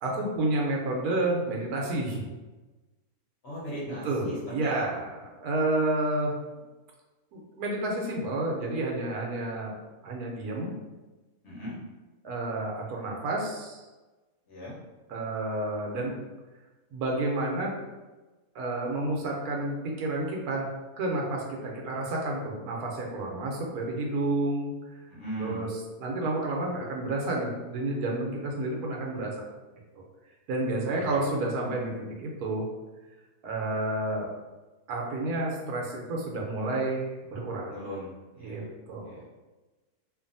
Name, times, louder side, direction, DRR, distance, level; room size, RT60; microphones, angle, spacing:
voice 1, 0.0-2.3 3.8-5.1 5.4-6.3 7.3-9.8 10.0-10.7 12.2-13.8 15.1-16.1 16.9-17.7 18.5-20.7 21.0-24.7 25.4-29.5 30.0-30.1 30.5-32.7 33.4-34.3 34.9-37.0 37.3-37.7 38.4-39.2, right 2 dB, 85° right, -1 dB, 1.2 m, -30 dB
voice 2, 3.4-4.4 4.6-5.0 11.4-11.7 14.5-14.7 25.1-25.6 30.9-31.3 37.7-38.7 39.1-39.2, equal, 50° left, -7 dB, 1.1 m, -38 dB
2.6 x 2.5 x 2.6 m, 1.2 s
omnidirectional pair, 1.6 m